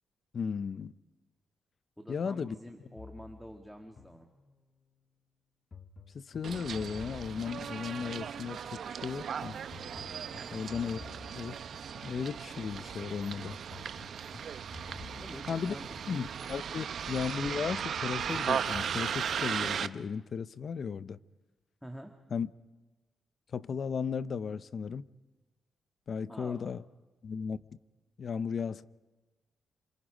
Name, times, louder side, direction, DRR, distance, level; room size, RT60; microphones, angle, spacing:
voice 1, 0.3-0.9 2.1-2.5 6.1-9.6 10.5-11.0 11.3-11.6 12.0-13.6 15.5-15.7 16.1-21.2 22.3-22.5 23.5-25.1 26.1-26.8 27.2-27.6 28.2-28.8, left 6 dB, 55° left, 0.7 m, -35 dB
voice 2, 2.0-4.3 10.4-10.6 15.1-16.2 21.8-22.2 26.3-26.7, equal, ahead, 1.9 m, -48 dB
sound 1, 3.0-4.8 5.7-8.8 9.7-12.8 13.7-16.7 17.7-19.1, left 4 dB, 40° left, 1.2 m, -52 dB
Bus, 6.4-19.9, right 7 dB, 65° right, 0.8 m, -37 dB
28.0 x 27.0 x 5.1 m
cardioid pair, 90°, 0 cm